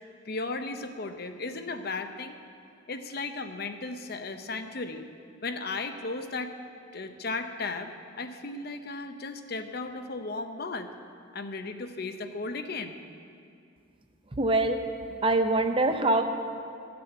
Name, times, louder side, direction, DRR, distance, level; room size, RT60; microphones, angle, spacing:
voice 1, 0.2-2.4 2.9-5.1 5.4-6.5 6.9-10.9 11.3-13.0, left 3 dB, 50° left, 7 dB, 0.7 m, -35 dB
voice 2, 14.4-14.8 15.2-16.2, right 2 dB, 25° right, 7 dB, 0.6 m, -23 dB
13.5 x 6.9 x 7.8 m, 2.4 s
head